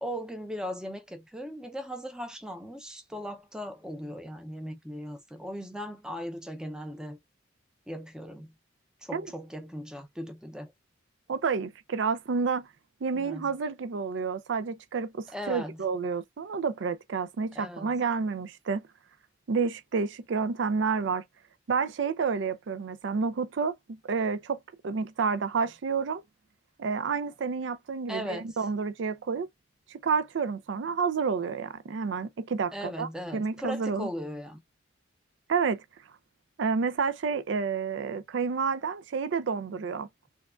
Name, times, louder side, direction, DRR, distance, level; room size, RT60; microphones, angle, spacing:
voice 1, 0.0-7.2 7.9-8.5 9.0-10.7 13.1-13.5 15.3-15.8 17.5-17.9 28.1-28.7 32.7-34.6, equal, 5° right, 0.5 m, -38 dB
voice 2, 11.3-12.7 13.0-18.8 19.5-21.2 21.7-23.7 24.0-24.6 24.8-26.2 26.8-29.5 29.9-34.1 35.5-35.8 36.6-40.1, right 5 dB, 65° right, 0.4 m, -29 dB
4.6 x 2.3 x 2.4 m
head